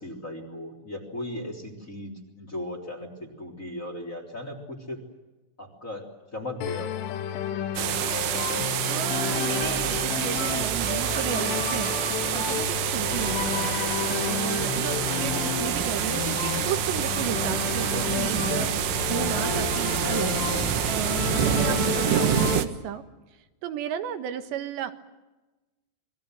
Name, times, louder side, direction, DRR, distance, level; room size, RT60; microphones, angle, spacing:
voice 1, 0.0-5.0 5.6-7.0 13.1-13.3 21.7-21.9, left 1 dB, 20° left, 2 dB, 3.1 m, -37 dB
sound 1, 6.6-22.6, left 9 dB, 80° left, 3.9 m, -31 dB
sound 2, 7.8-22.7, right 11 dB, 85° right, 3.8 m, -27 dB
voice 2, 8.9-13.8 14.2-23.0 23.6-24.9, right 10 dB, 70° right, 9 dB, 3.5 m, -34 dB
sound 3, 16.8-22.4, left 1 dB, 55° left, 6.8 m, -37 dB
27.0 x 22.5 x 7.7 m, 1.1 s
omnidirectional pair, 5.6 m